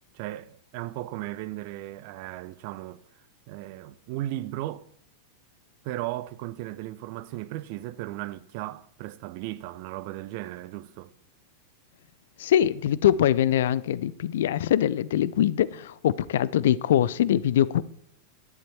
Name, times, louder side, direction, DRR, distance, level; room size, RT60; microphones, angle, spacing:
voice 1, 0.1-3.0 3.5-4.9 5.8-11.1, right 15 dB, 45° right, 0.7 m, -36 dB
voice 2, 12.4-17.8, left 11 dB, 60° left, 0.5 m, -23 dB
12.0 x 10.5 x 4.4 m
figure-of-eight pair, 90°, 0 cm